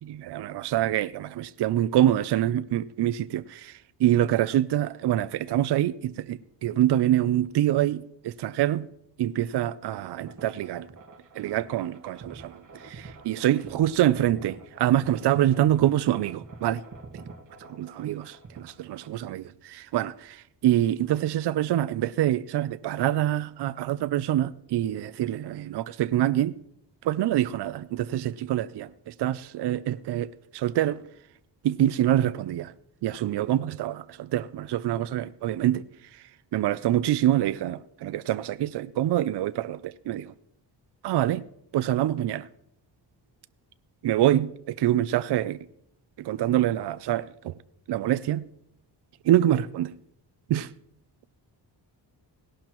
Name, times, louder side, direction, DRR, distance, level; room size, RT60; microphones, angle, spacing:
voice 1, 0.1-8.9 9.2-10.9 11.4-16.8 17.7-26.5 27.0-31.0 31.6-32.7 33.0-35.8 36.5-40.3 41.0-41.4 41.7-42.5 44.0-45.6 46.2-47.5 47.9-48.4 49.3-49.9 50.5-50.7, right 12 dB, 65° right, 0.5 m, -25 dB
sound 1, 10.3-19.2, right 4 dB, 45° right, 1.6 m, -46 dB
17.5 x 11.5 x 3.0 m
wide cardioid pair, 140°, 43 cm